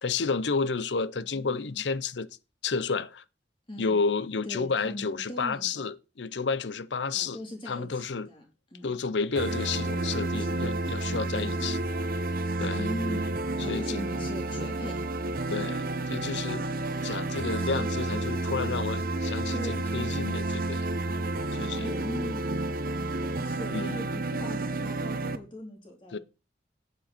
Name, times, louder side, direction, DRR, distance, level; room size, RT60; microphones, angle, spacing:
voice 1, 0.0-2.3 2.6-3.2 3.8-7.4 7.7-8.3 8.8-11.8 12.6-12.8 13.7-14.0 15.5-16.6 17.0-20.8 21.6-21.9 23.7-24.0 26.1-26.2, left 4 dB, 85° left, 0.7 m, -31 dB
voice 2, 1.2-1.9 3.7-4.0 4.4-5.9 7.1-8.4 8.7-8.9 9.8-10.5 11.5-11.7 12.6-15.1 16.6-16.9 17.4-17.8 19.5-19.8 21.0-26.2, left 1 dB, 30° left, 3.6 m, -41 dB
sound 1, 9.4-25.4, right 2 dB, 55° right, 0.9 m, -30 dB
9.1 x 8.4 x 4.4 m
head